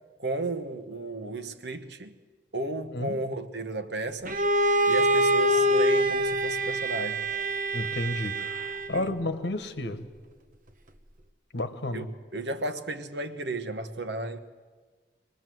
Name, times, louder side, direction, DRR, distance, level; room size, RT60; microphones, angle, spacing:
voice 1, 0.2-2.1 2.5-4.4 4.9-7.3 8.9-9.2 11.9-14.4, right 2 dB, 80° right, 1.3 m, -34 dB
Bowed string instrument, 4.3-9.1, right 1 dB, 45° right, 1.2 m, -25 dB
voice 2, 7.7-10.0 11.5-12.1, left 1 dB, 80° left, 1.4 m, -32 dB
25.0 x 19.5 x 7.8 m
head